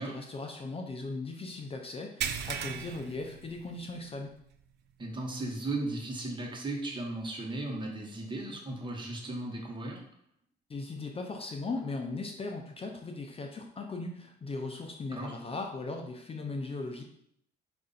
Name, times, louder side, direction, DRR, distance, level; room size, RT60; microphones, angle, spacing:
voice 1, 0.0-4.3 10.7-17.0, left 3 dB, 30° left, 3 dB, 0.5 m, -38 dB
sound 1, 2.2-4.1 4.4-4.6 5.1-5.2 6.9-7.0, right 8 dB, 65° right, 0.5 m, -37 dB
voice 2, 5.0-10.0 15.1-15.4, right 2 dB, 25° right, 0 dB, 1.1 m, -36 dB
4.7 x 2.5 x 4.1 m, 0.72 s
cardioid pair, 90°, 19 cm